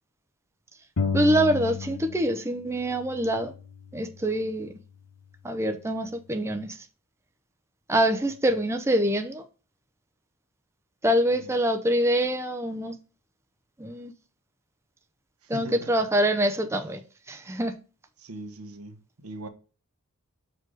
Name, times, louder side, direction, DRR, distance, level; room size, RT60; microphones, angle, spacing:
sound 1, 1.0-2.5 2.7-4.5, left 5 dB, 80° left, 0.8 m, -33 dB
voice 1, 1.1-3.5 3.9-4.7 5.4-6.8 7.9-9.4 11.0-12.9 13.8-14.1 15.5-17.0 17.3-17.7, equal, 10° right, 0.6 m, -25 dB
voice 2, 15.4-15.9 18.2-19.5, right 1 dB, 80° right, 1.2 m, -40 dB
6.5 x 4.6 x 4.7 m
head